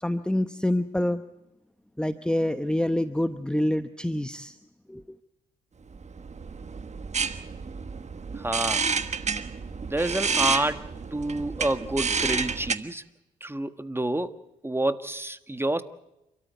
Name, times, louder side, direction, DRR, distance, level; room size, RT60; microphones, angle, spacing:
voice 1, 0.0-1.2 2.0-4.5 4.9-5.2, left 1 dB, 5° left, 11 dB, 0.9 m, -26 dB
sound 1, 5.9-12.8, right 5 dB, 40° right, 1.4 m, -30 dB
voice 2, 8.4-8.8 9.8-10.8 11.1-13.0 13.4-14.3 14.6-15.8, right 1 dB, 10° right, 11 dB, 1.5 m, -28 dB
29.0 x 13.5 x 8.2 m, 0.91 s
supercardioid pair, 55°, 19 cm